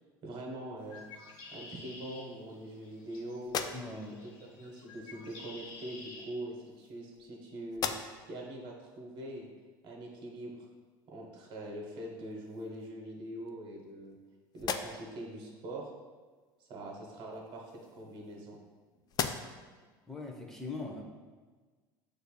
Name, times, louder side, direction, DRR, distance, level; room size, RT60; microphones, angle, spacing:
voice 1, 0.2-1.1 1.5-3.6 4.2-7.9 8.3-9.5 9.8-10.6 11.1-14.2 14.5-15.9 16.7-18.6, right 1 dB, 45° right, -2 dB, 1.0 m, -43 dB
Bird, 0.8-6.3, left 3 dB, 80° left, 0.9 m, -51 dB
sound 1, 3.4-4.3 5.4-5.5 6.5-7.4 7.7-8.4 8.9-9.0 11.7-11.8 12.2-12.9 13.5-14.2 14.5-15.3 17.3-18.7 19.1-19.8, left 6 dB, 35° left, 0.3 m, -39 dB
voice 2, 3.7-4.2 20.1-21.0, left 3 dB, 5° left, -1 dB, 0.8 m, -41 dB
6.6 x 2.6 x 2.2 m, 1.4 s
hypercardioid pair, 80°, 11 cm